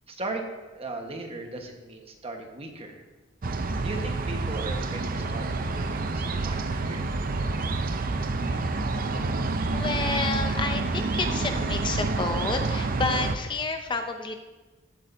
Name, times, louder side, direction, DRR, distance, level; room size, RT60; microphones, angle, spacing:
voice 1, 0.1-3.0 3.8-7.1, right 2 dB, 30° right, 3 dB, 1.2 m, -37 dB
sound 1, 3.4-13.4, right 3 dB, 45° right, 0.6 m, -28 dB
voice 2, 9.7-14.4, left 3 dB, 25° left, 6 dB, 0.5 m, -30 dB
14.5 x 8.6 x 2.7 m, 1.2 s
head